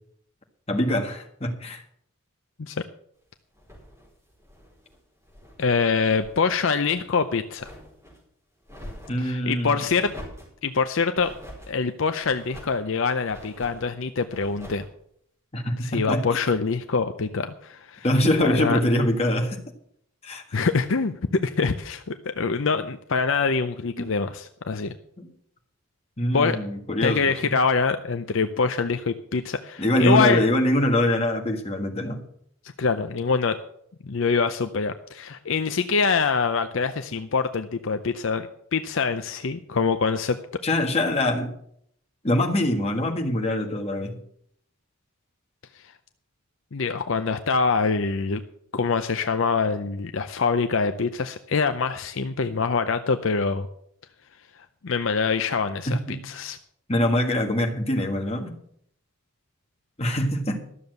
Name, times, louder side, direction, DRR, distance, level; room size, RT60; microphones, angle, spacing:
voice 1, 0.7-1.8 9.1-9.8 15.5-16.3 18.0-19.6 20.2-20.4 24.0-24.1 25.2-25.3 26.2-27.6 29.8-32.2 40.6-41.5 42.2-44.2 55.9-56.2 56.9-58.5 60.0-60.6, left 1 dB, 30° left, 2 dB, 1.6 m, -24 dB
sound 1, 3.5-5.6 5.9-6.5 6.9-8.2 8.6-9.3 9.9-10.6 11.2-11.7 12.2-12.8 13.2-13.9 14.3-14.9, equal, 15° right, 4.8 m, -44 dB
voice 2, 5.6-7.7 9.2-10.1 10.6-11.3 11.7-14.8 15.8-18.0 18.4-18.8 20.5-24.9 26.3-26.6 27.0-30.4 32.8-33.6 34.0-40.4 45.8-45.9 46.7-48.4 48.7-53.7 54.8-56.6, left 4 dB, 60° left, 8 dB, 0.6 m, -24 dB
12.5 x 7.1 x 7.8 m, 0.69 s
head